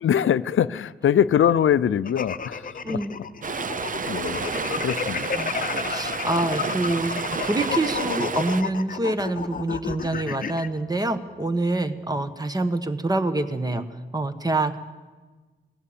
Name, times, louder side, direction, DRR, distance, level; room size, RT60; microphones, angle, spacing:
voice 1, 0.0-3.0 4.1-4.4 4.8-5.2, left 9 dB, 80° left, 16 dB, 0.5 m, -22 dB
sound 1, 1.1-13.3, equal, 70° right, 6.4 m, -52 dB
sound 2, 2.0-10.7, left 6 dB, 45° left, 0.8 m, -31 dB
voice 2, 2.8-3.1 5.3-5.5 5.8-13.9 14.1-14.8, right 2 dB, 20° right, 10 dB, 1.1 m, -26 dB
Stream, 3.4-8.6, right 5 dB, 40° right, 0.8 m, -30 dB
18.0 x 16.5 x 8.6 m, 1.3 s
wide cardioid pair, 160°, 20 cm